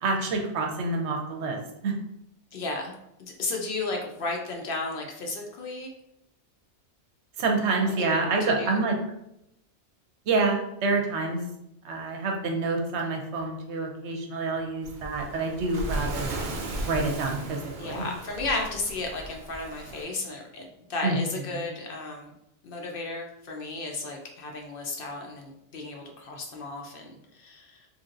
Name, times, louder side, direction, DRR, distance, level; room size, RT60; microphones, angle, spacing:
voice 1, 0.0-1.6 1.8-1.9 7.4-9.0 10.3-11.4 11.8-16.4 16.8-18.0 21.0-21.2 21.6-21.7, right 3 dB, 80° right, 1 dB, 0.9 m, -27 dB
voice 2, 2.5-5.9 7.9-8.8 17.8-22.3 22.6-27.9, left 3 dB, 60° left, 1 dB, 0.7 m, -34 dB
Waves surf, 14.8-20.0, right 2 dB, 55° right, 0.6 m, -36 dB
3.1 x 2.7 x 2.4 m, 0.81 s
omnidirectional pair, 1.1 m